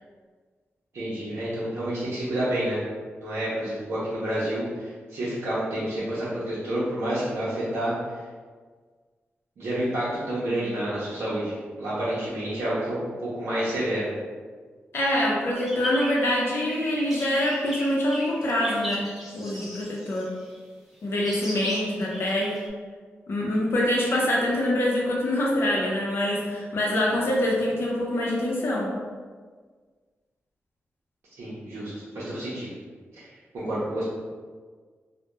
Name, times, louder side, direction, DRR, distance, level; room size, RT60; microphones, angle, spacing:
voice 1, 0.9-2.8 3.2-7.9 9.6-14.1 31.4-32.7 33.5-34.0, right 1 dB, 75° right, -10 dB, 0.6 m, -29 dB
voice 2, 14.9-19.1 19.3-20.3 21.0-22.6 23.3-29.0, left 1 dB, 60° left, -3 dB, 0.6 m, -25 dB
sound 1, 15.5-20.6 21.3-22.7, equal, 5° right, 0.4 m, -38 dB
2.8 x 2.1 x 2.2 m, 1.5 s
wide cardioid pair, 120°, 5 cm